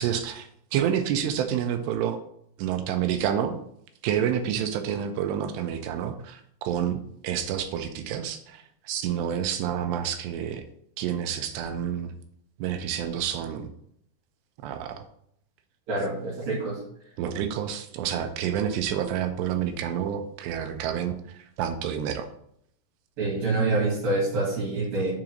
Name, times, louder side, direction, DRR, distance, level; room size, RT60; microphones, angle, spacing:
voice 1, 0.0-2.2 2.6-3.6 4.0-10.6 11.0-12.1 12.6-13.7 14.6-15.0 17.2-22.3, right 9 dB, 85° right, 7 dB, 2.9 m, -29 dB
voice 2, 15.9-16.8 23.2-25.1, right 2 dB, 60° right, -5 dB, 4.0 m, -26 dB
7.3 x 3.9 x 6.2 m, 0.70 s
omnidirectional pair, 4.9 m